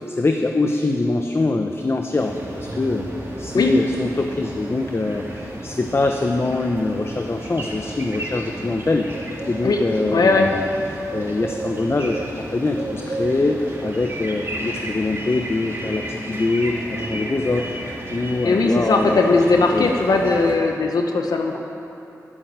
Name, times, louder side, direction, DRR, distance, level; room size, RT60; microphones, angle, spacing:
voice 1, 0.1-3.1 3.4-9.1 9.5-12.2 12.5-19.3 19.7-19.9, left 2 dB, 40° left, 4 dB, 0.8 m, -23 dB
sound 1, 2.2-20.6, right 1 dB, 40° right, 3.3 m, -33 dB
voice 2, 10.1-10.5 18.4-21.6, left 3 dB, 80° left, 3 dB, 1.1 m, -18 dB
11.0 x 9.2 x 8.8 m, 2.9 s
cardioid pair, 50°, 7 cm